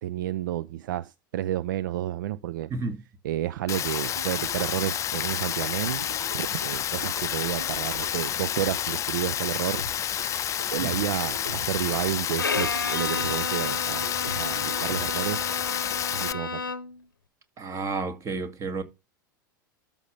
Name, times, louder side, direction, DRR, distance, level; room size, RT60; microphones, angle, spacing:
voice 1, 0.0-2.7 3.2-6.0 6.3-9.8 10.7-14.1 14.3-15.4 16.1-16.6, right 13 dB, 65° right, 0.5 m, -31 dB
Rain, 3.7-16.3, left 10 dB, 25° left, 0.5 m, -30 dB
sound 1, 3.7-3.8 4.2-4.7 5.5-5.6 5.9-6.4 7.2-7.3 7.6-8.1 8.7-9.0 9.7-10.3 10.6-12.0 12.3-13.8 14.0-15.3, right 2 dB, 80° right, 2.1 m, -40 dB
Bowed string instrument, 12.4-17.0, left 4 dB, 90° left, 0.8 m, -32 dB
voice 2, 17.6-18.8, right 3 dB, 25° right, 2.1 m, -31 dB
13.0 x 5.3 x 3.4 m
figure-of-eight pair, 90°, 11 cm